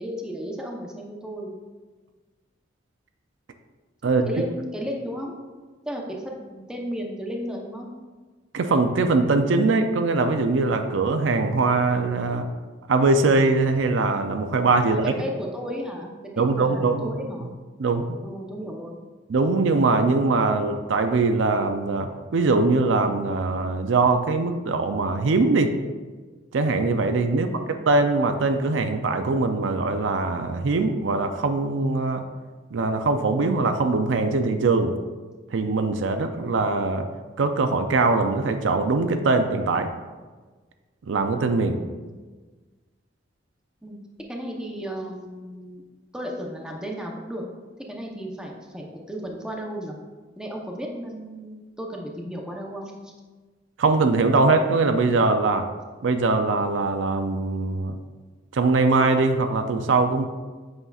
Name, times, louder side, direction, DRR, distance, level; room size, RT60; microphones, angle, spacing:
voice 1, 0.0-1.5 4.2-5.3 5.9-7.9 14.8-17.5 18.2-19.0 27.3-27.7 41.7-42.2 43.8-44.0 44.3-45.8 46.1-47.4 47.9-50.0 50.4-53.1, equal, 5° right, -1 dB, 0.7 m, -34 dB
voice 2, 8.5-12.5 12.9-15.1 16.4-17.1 17.8-18.1 19.3-25.7 26.5-32.2 32.7-34.9 35.5-37.1 37.4-39.9 41.1-41.8 53.8-55.7 56.0-58.0 58.5-60.3, right 3 dB, 75° right, 7 dB, 0.5 m, -22 dB
8.0 x 5.5 x 2.4 m, 1.4 s
head